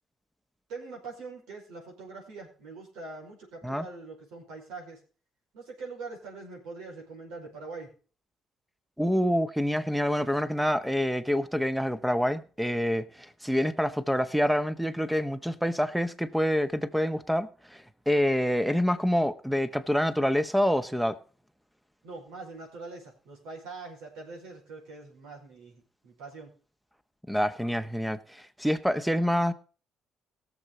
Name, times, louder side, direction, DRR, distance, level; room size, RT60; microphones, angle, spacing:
voice 1, 0.7-5.0 5.5-7.9 22.0-26.5, right 3 dB, 80° right, 5.1 m, -43 dB
voice 2, 9.0-21.2 27.3-29.5, equal, ahead, 1.3 m, -27 dB
18.0 x 7.2 x 3.9 m
supercardioid pair, 65°, 0 cm